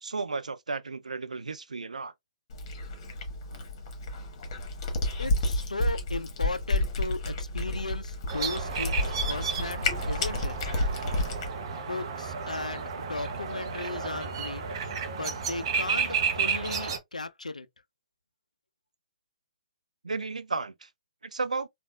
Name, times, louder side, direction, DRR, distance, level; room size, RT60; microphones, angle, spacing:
voice 1, 0.0-2.1 20.0-20.9 21.3-21.7, right 4 dB, 80° right, 0.4 m, -33 dB
Cat, 2.5-11.5, left 2 dB, 40° left, 1.3 m, -31 dB
voice 2, 5.2-10.6 11.7-14.6 15.1-17.7, left 3 dB, 85° left, 0.4 m, -36 dB
sound 1, 8.3-17.0, right 6 dB, 45° right, 0.7 m, -32 dB
3.3 x 2.4 x 2.2 m
figure-of-eight pair, 130°, 4 cm